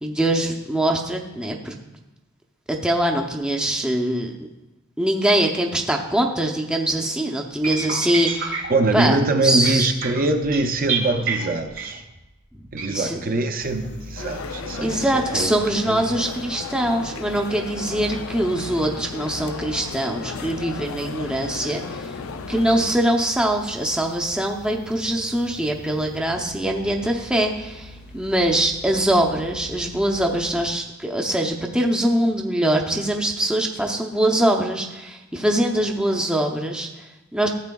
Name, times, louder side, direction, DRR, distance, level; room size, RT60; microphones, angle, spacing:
voice 1, 0.0-1.7 2.7-4.5 5.0-9.2 9.4-9.9 12.9-13.2 14.8-22.1 22.5-37.5, right 1 dB, 5° right, 1 dB, 0.6 m, -23 dB
sound 1, 7.6-12.2 12.7-12.9, right 5 dB, 65° right, 1.7 m, -29 dB
voice 2, 8.7-12.0 12.7-15.6 15.9-16.0, right 2 dB, 45° right, 6 dB, 0.6 m, -23 dB
sound 2, 13.6-30.7, equal, 55° left, 0.8 m, -42 dB
sound 3, 14.2-23.4, left 5 dB, 80° left, 0.5 m, -35 dB
14.0 x 7.7 x 2.3 m, 0.99 s
head